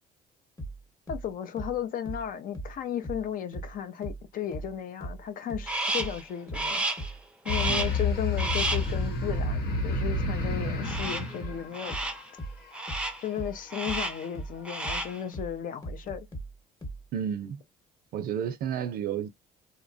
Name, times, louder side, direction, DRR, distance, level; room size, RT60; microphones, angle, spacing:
sound 1, 0.6-3.8 4.0-17.1, right 1 dB, 20° left, 1.0 m, -39 dB
voice 1, 1.1-6.8 7.4-12.2 13.2-16.3, left 9 dB, 55° left, 0.5 m, -35 dB
Crow, 5.7-6.2 6.5-7.1 7.4-8.0 8.4-8.9 10.8-11.4 11.7-12.3 12.7-13.3 13.7-14.3 14.6-15.2, right 2 dB, 5° right, 0.5 m, -31 dB
sound 2, 7.5-12.4, left 2 dB, 80° left, 0.9 m, -30 dB
voice 2, 17.1-17.6 18.1-19.3, right 8 dB, 60° right, 0.5 m, -31 dB
2.8 x 2.2 x 2.5 m
cardioid pair, 110°, 17 cm